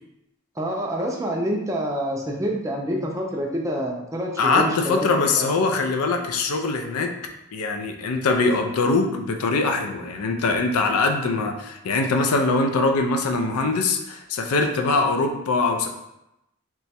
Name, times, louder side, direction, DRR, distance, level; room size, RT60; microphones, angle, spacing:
voice 1, 0.6-5.5, equal, 15° right, -1 dB, 0.4 m, -27 dB
voice 2, 4.4-7.1 7.5-15.9, left 3 dB, 85° left, 5 dB, 0.4 m, -22 dB
3.0 x 2.3 x 4.1 m, 0.88 s
head